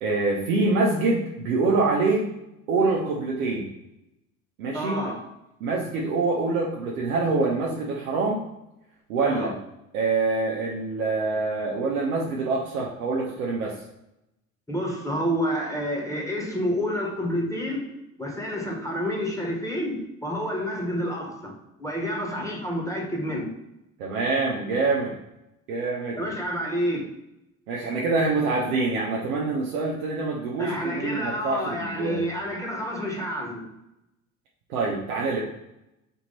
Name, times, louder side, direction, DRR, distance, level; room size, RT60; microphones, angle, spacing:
voice 1, 0.0-2.3 2.7-3.7 4.6-5.0 5.6-8.4 9.1-9.5 9.9-13.8 24.0-25.1 25.7-26.3 27.7-32.3 34.7-35.4, right 3 dB, 80° right, -3 dB, 0.8 m, -25 dB
voice 2, 4.7-5.2 9.2-9.5 14.7-17.9 18.2-21.5 21.8-23.5 26.2-27.1 30.6-33.6, equal, 5° left, -2 dB, 1.4 m, -29 dB
3.6 x 2.9 x 4.1 m, 0.89 s
hypercardioid pair, 60°, 42 cm